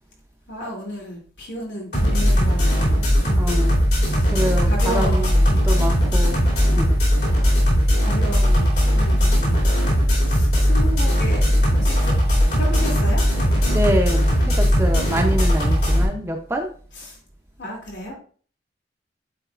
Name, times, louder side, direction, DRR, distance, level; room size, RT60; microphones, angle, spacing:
voice 1, 0.5-3.7 4.0-4.3 4.6-5.5 6.6-7.0 8.0-9.6 10.3-11.4 11.7-12.1 12.5-13.2 17.1-17.2 17.6-18.1, equal, 85° left, -2 dB, 2.6 m, -33 dB
sound 1, 1.9-16.0, equal, 65° left, 2.9 m, -18 dB
voice 2, 3.3-3.9 4.3-5.2 5.5-6.4 6.7-7.0 7.3-7.4 13.7-16.7, equal, 15° right, 3 dB, 0.5 m, -26 dB
10.0 x 4.0 x 2.4 m, 0.43 s
head